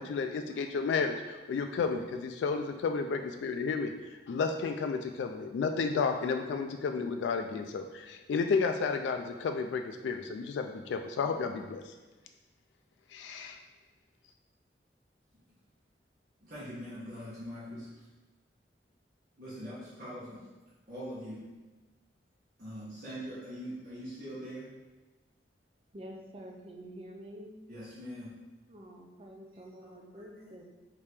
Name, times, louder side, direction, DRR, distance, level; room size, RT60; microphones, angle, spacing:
voice 1, 0.0-3.9 4.3-11.9 13.1-13.6, left 5 dB, 85° left, 5 dB, 0.3 m, -32 dB
voice 2, 16.4-18.0 19.4-20.4 20.9-21.4 22.6-24.7 27.7-28.3 29.5-30.6, equal, 50° right, -10 dB, 1.1 m, -43 dB
voice 3, 25.9-27.5 28.7-30.6, equal, 30° right, 1 dB, 0.5 m, -48 dB
4.7 x 2.8 x 3.4 m, 1.2 s
head